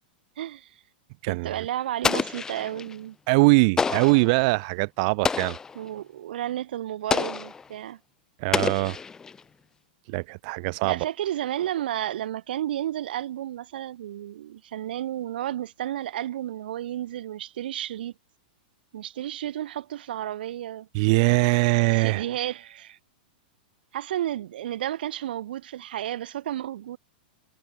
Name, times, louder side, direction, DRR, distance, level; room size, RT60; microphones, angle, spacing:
voice 1, 0.4-0.8 1.3-3.2 5.8-8.0 10.8-18.1 18.9-20.9 21.9-23.0 23.9-27.0, right 12 dB, 70° right, 3.5 m, -32 dB
voice 2, 1.2-1.6 3.3-5.6 8.4-9.0 10.1-11.0 20.9-22.2, right 29 dB, 45° right, 2.1 m, -22 dB
Explosion, 2.0-2.9 3.8-4.3 5.2-5.8 7.1-7.6 8.5-9.4, left 5 dB, 10° left, 1.0 m, -27 dB
supercardioid pair, 155°, 5 cm